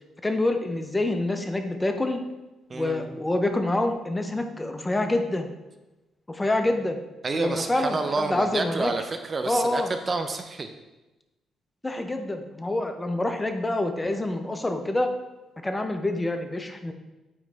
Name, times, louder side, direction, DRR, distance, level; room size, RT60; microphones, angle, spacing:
voice 1, 0.2-2.2 2.7-5.5 6.3-7.0 7.3-8.9 9.4-9.9 11.8-15.2 15.6-16.9, left 2 dB, 15° left, 6 dB, 0.6 m, -26 dB
voice 2, 2.7-3.1 7.2-10.7, right 3 dB, 35° right, 7 dB, 0.5 m, -29 dB
8.7 x 3.2 x 3.4 m, 1.1 s
cardioid pair, 90°, 0 cm